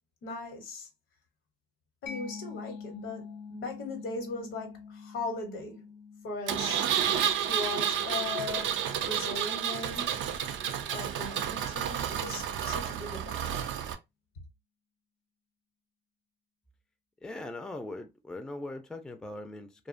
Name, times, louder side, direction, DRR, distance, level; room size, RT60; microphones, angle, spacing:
voice 1, 0.2-0.9 2.0-5.9 6.2-10.2 10.9-13.6, left 3 dB, 85° left, 0.9 m, -39 dB
Mallet percussion, 2.1-9.4, left 5 dB, 65° left, 0.6 m, -47 dB
Engine, 6.5-13.9, right 9 dB, 70° right, 0.4 m, -31 dB
voice 2, 17.2-19.9, left 2 dB, 5° left, 0.3 m, -40 dB
2.6 x 2.1 x 2.4 m
cardioid pair, 90°, 20 cm